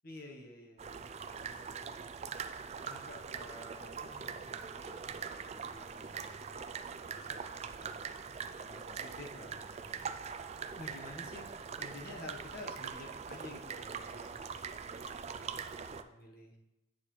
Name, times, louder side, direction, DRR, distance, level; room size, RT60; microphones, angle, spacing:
voice 1, 0.0-0.8 1.4-2.0 2.9-6.7 7.0-8.2 8.5-9.9 10.8-15.0 15.4-16.6, left 2 dB, 50° left, 1 dB, 1.2 m, -51 dB
sound 1, 0.8-16.0, right 6 dB, 35° right, 0.3 m, -43 dB
9.1 x 6.5 x 3.2 m, 0.92 s
head